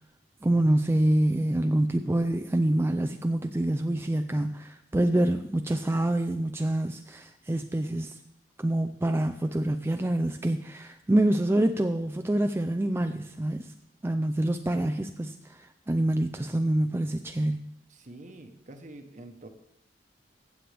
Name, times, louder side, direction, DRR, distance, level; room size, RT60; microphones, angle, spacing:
voice 1, 0.4-8.2 8.6-13.7 14.0-17.6, right 1 dB, 15° right, 7 dB, 0.4 m, -26 dB
voice 2, 17.9-19.5, right 2 dB, 45° right, 7 dB, 1.0 m, -46 dB
15.5 x 7.6 x 3.4 m, 0.82 s
head